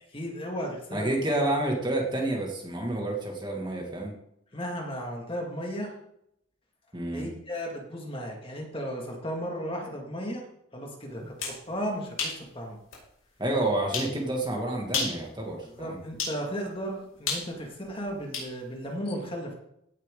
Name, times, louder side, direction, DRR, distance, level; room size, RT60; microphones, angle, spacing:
voice 1, 0.1-1.4 4.5-5.9 7.1-10.4 10.7-12.8 15.8-19.5, equal, 25° left, 0 dB, 2.1 m, -35 dB
voice 2, 0.9-4.1 6.9-7.3 13.4-16.0, right 1 dB, 20° right, 0 dB, 2.1 m, -29 dB
sound 1, 11.2-11.6 12.2-12.4 12.9-13.0 13.9-14.1 14.8-15.2 16.2-16.4 17.3-18.5, left 4 dB, 80° left, 5.4 m, -31 dB
16.5 x 7.2 x 3.8 m, 0.76 s
head